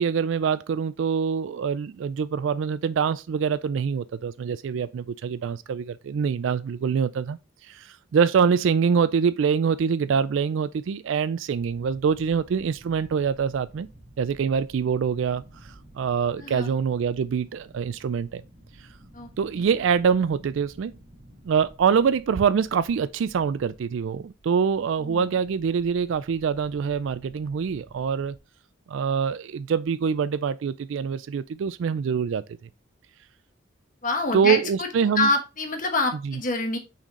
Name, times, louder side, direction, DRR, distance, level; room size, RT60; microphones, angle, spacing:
voice 1, 0.0-7.4 7.7-13.9 14.2-15.4 15.9-18.4 19.4-20.9 21.4-28.4 28.9-32.4 34.3-35.3 36.2-36.4, right 6 dB, 70° right, 0.3 m, -24 dB
sound 1, 11.6-28.4, right 1 dB, 50° right, 1.9 m, -52 dB
voice 2, 16.4-16.7 19.1-19.3 19.5-19.6 25.0-25.3 34.0-34.9 35.2-36.8, left 3 dB, 40° left, 1.2 m, -26 dB
5.9 x 4.3 x 3.7 m
head